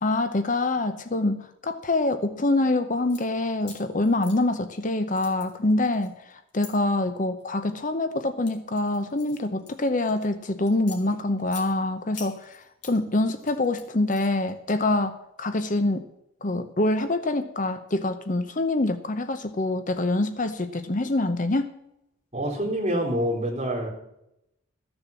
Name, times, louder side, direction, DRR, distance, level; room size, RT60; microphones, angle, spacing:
voice 1, 0.0-6.1 6.5-16.0 16.4-21.7, left 2 dB, 40° left, 9 dB, 0.8 m, -25 dB
sound 1, 2.9-3.2 3.6-4.8 5.1-6.7 7.4-7.7 8.2-10.3 10.7-11.7 12.1-13.0 13.3-14.5, left 5 dB, 55° left, 2.9 m, -45 dB
voice 2, 22.3-23.9, equal, 30° right, -2 dB, 3.6 m, -26 dB
13.5 x 7.0 x 7.1 m, 0.83 s
head